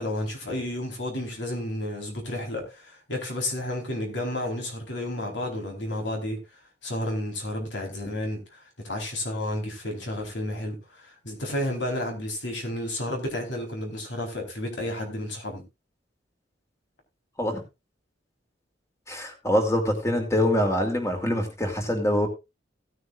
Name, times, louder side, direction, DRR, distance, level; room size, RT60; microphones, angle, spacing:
voice 1, 0.0-6.4 6.8-15.6, left 1 dB, 65° left, 4.2 m, -31 dB
voice 2, 19.1-22.3, left 1 dB, 15° left, 2.7 m, -24 dB
17.0 x 9.5 x 2.5 m
head